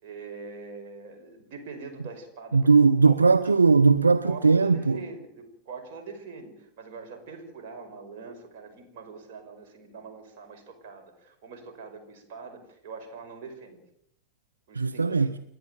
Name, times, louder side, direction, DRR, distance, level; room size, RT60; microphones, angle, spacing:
voice 1, 0.0-2.7 3.0-3.1 4.2-13.8 14.7-15.3, right 4 dB, 50° right, 5.5 m, -43 dB
voice 2, 2.5-5.1 14.7-15.4, right 4 dB, 80° right, 0.7 m, -19 dB
29.5 x 10.5 x 9.3 m
figure-of-eight pair, 90°, 0 cm